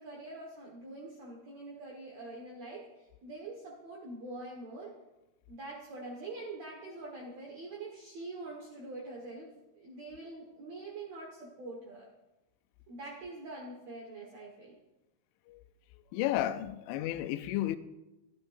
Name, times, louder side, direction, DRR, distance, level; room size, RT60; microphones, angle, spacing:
voice 1, 0.0-4.9 5.5-12.1 12.9-14.8, right 2 dB, 60° right, 1.8 m, -44 dB
voice 2, 16.1-17.8, left 13 dB, 85° left, 3.0 m, -32 dB
16.5 x 12.0 x 2.6 m
omnidirectional pair, 5.3 m